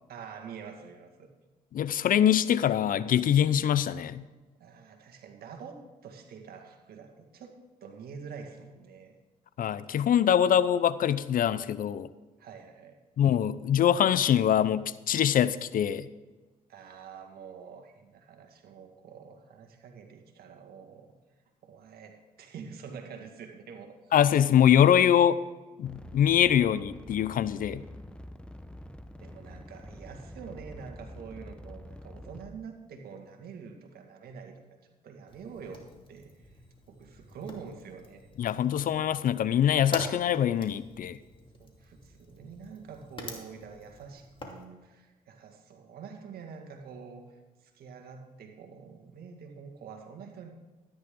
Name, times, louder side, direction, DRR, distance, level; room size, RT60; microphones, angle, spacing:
voice 1, 0.1-1.3 4.6-9.1 12.4-13.0 16.7-21.1 21.6-24.1 29.2-34.6 35.0-38.3 41.5-50.5, right 6 dB, 75° right, 4 dB, 1.9 m, -46 dB
voice 2, 1.7-4.2 9.6-12.1 13.2-16.1 24.1-25.4 25.8-27.8 38.4-41.2, left 9 dB, 60° left, 16 dB, 0.6 m, -24 dB
sound 1, 25.8-32.7, left 1 dB, 5° left, 1.0 m, -46 dB
Fire, 35.3-44.7, left 2 dB, 30° left, 2.5 m, -45 dB
13.0 x 10.5 x 3.8 m, 1.2 s
supercardioid pair, 60°, 16 cm